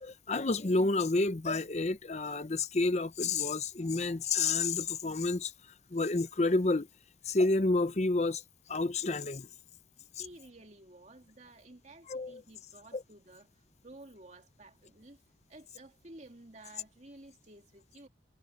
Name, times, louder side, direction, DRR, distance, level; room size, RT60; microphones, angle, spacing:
voice 1, 0.0-5.5 5.9-6.9 7.3-8.4 8.7-9.5 12.1-12.4 12.9-13.0, left 3 dB, 40° left, 0.7 m, -29 dB
voice 2, 10.2-15.2 15.5-18.1, right 2 dB, 40° right, 2.8 m, -53 dB
head